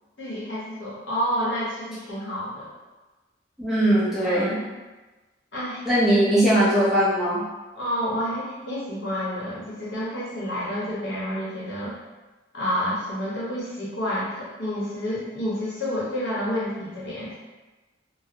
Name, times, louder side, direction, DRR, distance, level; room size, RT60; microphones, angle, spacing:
voice 1, 0.2-2.7 4.2-4.7 5.5-5.8 7.7-11.9 12.5-17.4, equal, 80° left, -8 dB, 1.1 m, -29 dB
voice 2, 3.6-4.6 5.8-7.4, right 1 dB, 5° right, -11 dB, 0.9 m, -20 dB
3.1 x 2.2 x 2.8 m, 1.2 s
head